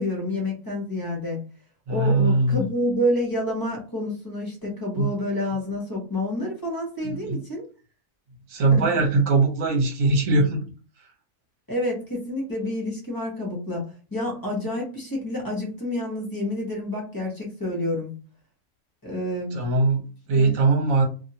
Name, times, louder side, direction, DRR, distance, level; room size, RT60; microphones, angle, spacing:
voice 1, 0.0-1.4 1.9-7.6 8.7-8.8 11.7-13.8 14.1-18.1 19.0-19.5 20.3-20.5, left 1 dB, 15° left, -3 dB, 0.9 m, -28 dB
voice 2, 1.9-2.7 4.9-5.1 7.0-7.4 8.5-10.6 19.5-21.1, right 3 dB, 70° right, 2 dB, 1.3 m, -21 dB
2.7 x 2.7 x 2.7 m, 0.36 s
omnidirectional pair, 1.6 m